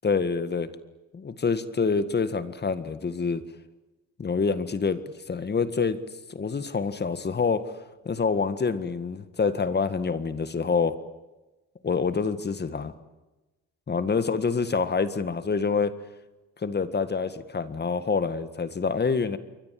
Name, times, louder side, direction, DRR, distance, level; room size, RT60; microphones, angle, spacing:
voice 1, 0.0-0.7 1.1-3.4 4.2-5.0 5.3-6.0 6.3-7.7 8.1-10.9 11.8-12.9 13.9-15.9 16.6-19.4, left 5 dB, 35° left, 12 dB, 1.8 m, -26 dB
28.5 x 23.0 x 7.7 m, 1.1 s
cardioid pair, 90°, 30 cm